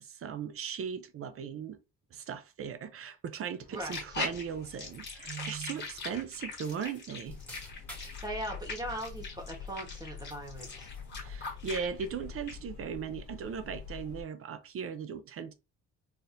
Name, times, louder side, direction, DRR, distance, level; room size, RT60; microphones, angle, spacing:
voice 1, 0.0-1.8 2.1-7.4 11.2-15.5, right 7 dB, 50° right, 0.5 m, -38 dB
sound 1, 3.7-12.1 12.5-12.6, left 3 dB, 35° left, 1.5 m, -41 dB
sound 2, 6.3-8.3 8.8-10.0 10.3-11.2, equal, 5° left, 1.4 m, -52 dB
sound 3, 7.3-14.2, left 6 dB, 80° left, 1.2 m, -46 dB
voice 2, 8.0-10.9, right 1 dB, 15° right, 1.1 m, -39 dB
4.1 x 2.6 x 2.5 m
cardioid pair, 120°, 30 cm